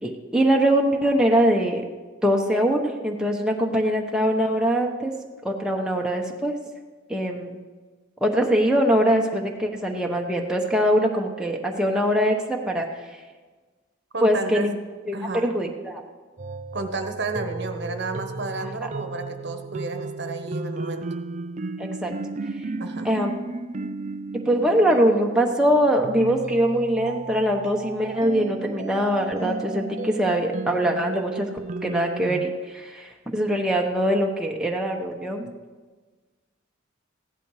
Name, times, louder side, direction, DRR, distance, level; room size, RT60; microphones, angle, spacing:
voice 1, 0.0-1.8 2.2-5.1 5.4-6.6 7.1-7.6 8.2-12.9 14.2-14.7 15.1-15.2 15.4-16.0 18.8-18.9 21.8-22.1 22.6-22.7 23.0-23.4 24.4-31.5 31.8-35.5, equal, 5° right, 0 dB, 1.0 m, -22 dB
voice 2, 14.1-14.7 15.1-15.5 16.7-21.1 22.8-23.3, right 3 dB, 55° right, 6 dB, 1.1 m, -32 dB
sound 1, 16.4-32.4, right 3 dB, 35° right, 0.4 m, -34 dB
15.5 x 11.0 x 4.9 m, 1.4 s
head